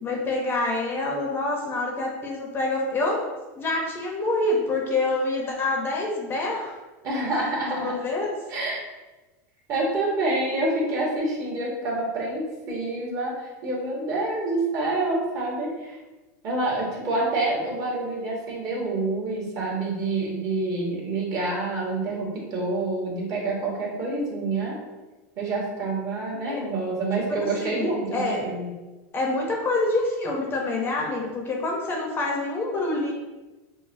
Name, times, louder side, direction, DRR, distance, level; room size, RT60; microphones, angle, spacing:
voice 1, 0.0-3.3 3.5-6.8 7.6-8.3 26.4-26.6 27.3-28.4 29.1-33.1, left 2 dB, 25° left, 0 dB, 0.6 m, -26 dB
voice 2, 7.0-7.9 8.5-8.8 9.7-16.0 16.4-24.8 25.4-28.7, right 2 dB, 40° right, -3 dB, 1.2 m, -27 dB
5.3 x 2.1 x 2.5 m, 1.1 s
supercardioid pair, 130°, 9 cm